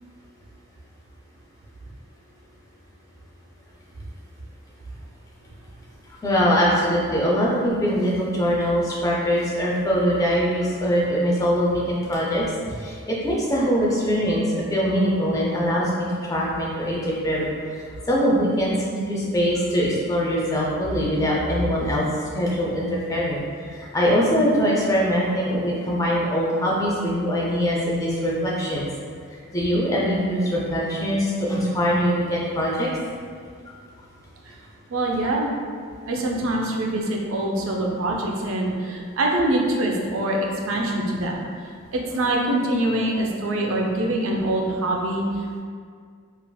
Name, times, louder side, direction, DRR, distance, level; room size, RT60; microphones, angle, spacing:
voice 1, 6.1-28.9 29.5-32.9, equal, 15° left, -4 dB, 0.4 m, -23 dB
voice 2, 34.9-35.5 36.1-41.4 41.9-45.3, right 1 dB, 70° right, -1 dB, 0.4 m, -24 dB
3.3 x 2.3 x 2.2 m, 2.1 s
head